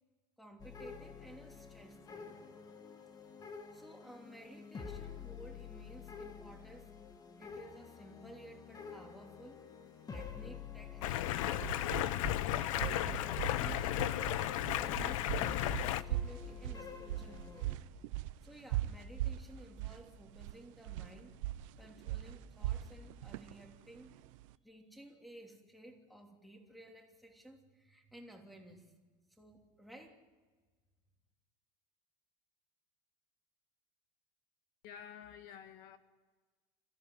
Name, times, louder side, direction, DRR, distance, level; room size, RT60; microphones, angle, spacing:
voice 1, 0.4-2.3 3.7-6.9 7.4-9.7 10.1-12.2 12.5-13.9 14.4-17.7 18.4-21.3 21.8-24.1 24.6-28.9 29.3-30.2, right 1 dB, ahead, 3 dB, 3.0 m, -55 dB
sound 1, 0.6-17.8, left 6 dB, 25° left, 1.6 m, -49 dB
Stream, 11.0-16.0, left 13 dB, 90° left, 0.8 m, -34 dB
sound 2, 11.3-24.5, right 14 dB, 80° right, 0.8 m, -41 dB
voice 2, 34.8-36.0, left 8 dB, 60° left, 8 dB, 1.8 m, -50 dB
27.0 x 15.0 x 9.5 m, 1.3 s
supercardioid pair, 145°, 16 cm